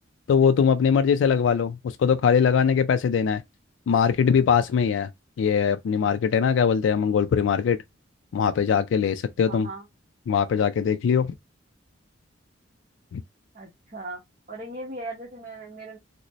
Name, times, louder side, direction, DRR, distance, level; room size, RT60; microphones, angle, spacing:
voice 1, 0.3-3.4 3.9-5.1 5.4-7.8 8.3-9.7 10.3-11.3 13.1-13.2, left 7 dB, 80° left, 0.3 m, -21 dB
voice 2, 9.4-9.8 13.5-14.2 14.5-16.0, right 2 dB, 45° right, 0.9 m, -38 dB
3.9 x 2.0 x 3.0 m
head